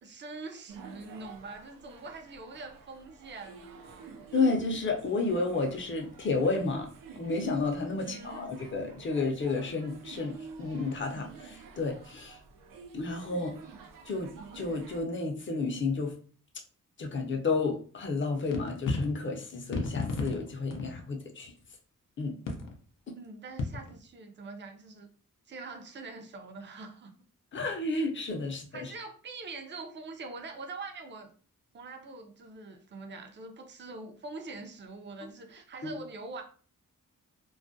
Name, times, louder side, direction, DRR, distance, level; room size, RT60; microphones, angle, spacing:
voice 1, 0.0-4.1 8.0-8.5 23.1-25.1 25.5-27.1 28.7-31.3 31.7-36.4, right 3 dB, 35° right, 0.5 m, -44 dB
sound 1, 0.7-15.0, right 5 dB, 90° right, 0.5 m, -49 dB
voice 2, 4.3-12.4 12.9-13.6 14.1-16.2 17.0-21.5 22.2-22.4 27.5-28.9 35.8-35.9, left 3 dB, 35° left, 0.6 m, -31 dB
sound 2, 18.2-18.3 18.5-19.1 19.7-21.0 21.5-21.6 22.5-22.8 23.6-23.9, left 3 dB, 85° left, 0.6 m, -33 dB
2.3 x 2.1 x 2.6 m
wide cardioid pair, 95°, 32 cm